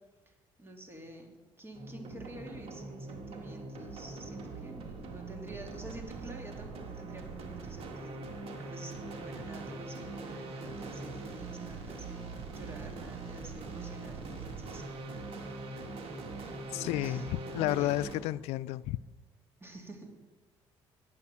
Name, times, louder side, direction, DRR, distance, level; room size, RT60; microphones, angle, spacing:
voice 1, 0.6-8.2 8.6-12.2 12.5-15.0 16.7-18.3 19.6-20.1, right 1 dB, 20° right, 2 dB, 2.9 m, -48 dB
sound 1, 1.7-18.2, right 3 dB, 65° right, 2.1 m, -42 dB
voice 2, 16.7-17.2 17.5-19.0, left 15 dB, 80° left, 17 dB, 0.4 m, -31 dB
9.5 x 8.9 x 7.0 m, 1.2 s
supercardioid pair, 75°, 11 cm